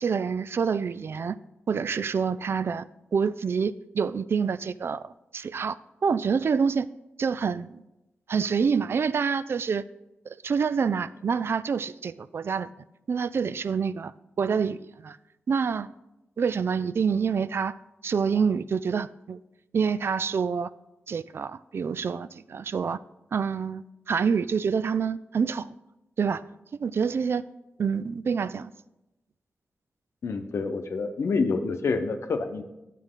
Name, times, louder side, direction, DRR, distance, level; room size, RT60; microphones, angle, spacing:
voice 1, 0.0-1.4 1.7-2.9 3.1-5.8 6.0-6.9 7.2-7.8 8.3-9.8 10.3-12.7 13.1-14.1 14.4-15.2 15.5-15.9 16.4-17.8 18.0-19.4 19.7-20.7 21.1-23.0 23.3-25.7 26.2-26.4 26.8-27.5 27.8-28.7, right 6 dB, 65° right, 16 dB, 0.3 m, -27 dB
voice 2, 30.2-32.6, left 4 dB, 80° left, 6 dB, 0.8 m, -27 dB
9.9 x 7.4 x 3.7 m, 0.94 s
cardioid pair, 70°, 4 cm